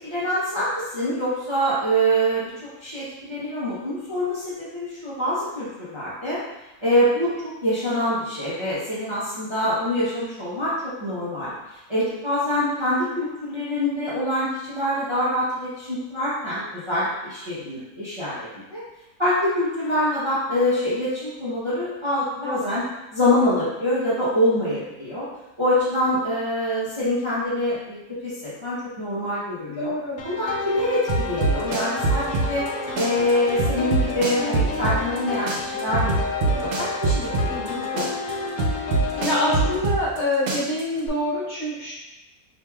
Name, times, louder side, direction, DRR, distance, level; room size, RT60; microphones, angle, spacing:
voice 1, 0.0-6.4 6.8-7.3 7.6-11.5 11.9-18.8 19.2-22.8 23.1-25.3 25.6-29.9 30.2-32.6 32.9-36.1 36.4-37.6 37.9-38.1, equal, 30° right, -10 dB, 0.6 m, -25 dB
voice 2, 22.4-22.8 29.8-30.2 37.5-37.8 39.2-41.9, left 1 dB, 50° left, -8 dB, 1.4 m, -26 dB
sound 1, 30.2-39.8, left 4 dB, 75° left, 1.0 m, -30 dB
sound 2, 31.1-32.7 33.0-35.2 35.5-37.7 38.0-40.2 40.5-41.1, right 3 dB, 65° right, 0.9 m, -23 dB
4.5 x 2.8 x 2.3 m, 0.97 s
omnidirectional pair, 1.5 m